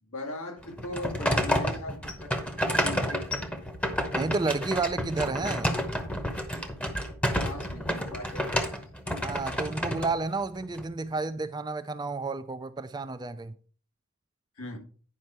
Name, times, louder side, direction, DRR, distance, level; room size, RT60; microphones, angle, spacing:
voice 1, 0.0-2.5 2.7-3.3 7.4-8.8 14.6-14.8, left 2 dB, 80° left, 2.1 m, -39 dB
sound 1, 0.6-10.9, equal, 5° left, 0.9 m, -30 dB
voice 2, 4.1-5.7 9.2-13.5, right 3 dB, 20° right, 0.4 m, -31 dB
9.5 x 5.5 x 4.4 m
head